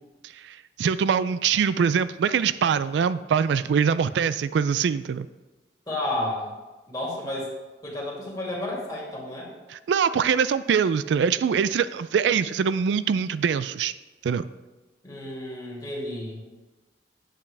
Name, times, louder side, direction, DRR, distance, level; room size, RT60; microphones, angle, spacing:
voice 1, 0.4-5.3 9.7-13.9 14.2-14.5, right 7 dB, 80° right, 15 dB, 0.3 m, -23 dB
voice 2, 5.9-6.5 6.9-7.5 7.8-9.5 15.0-16.4, left 1 dB, 20° left, -5 dB, 2.4 m, -31 dB
8.5 x 8.3 x 3.3 m, 1.2 s
head